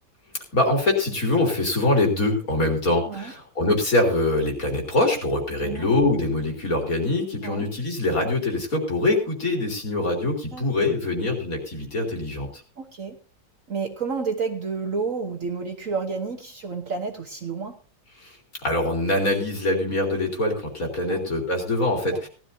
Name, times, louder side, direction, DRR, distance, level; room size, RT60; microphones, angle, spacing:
voice 1, 0.5-12.5 18.2-18.4 18.6-22.3, left 2 dB, 50° left, 1 dB, 3.6 m, -24 dB
voice 2, 5.6-5.9 7.4-7.6 10.5-10.7 12.8-13.2 13.7-17.8 21.1-21.3 22.1-22.3, right 5 dB, 50° right, 5 dB, 1.4 m, -30 dB
18.0 x 12.5 x 2.7 m, 0.36 s
omnidirectional pair, 2.0 m